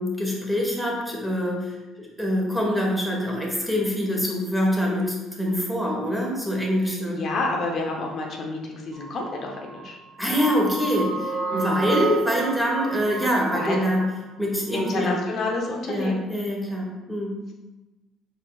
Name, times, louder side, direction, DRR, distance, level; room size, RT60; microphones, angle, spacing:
voice 1, 0.0-1.7 2.0-7.2 10.2-14.0 14.4-15.3 15.9-17.3, equal, ahead, -2 dB, 1.3 m, -25 dB
voice 2, 6.8-10.0 11.5-12.0 13.5-13.8 14.7-16.2, left 2 dB, 55° left, 0 dB, 0.7 m, -29 dB
sound 1, 8.9-14.2 14.7-15.1, right 3 dB, 55° right, 0.4 m, -32 dB
4.4 x 3.9 x 2.3 m, 1.1 s
supercardioid pair, 75°, 0 cm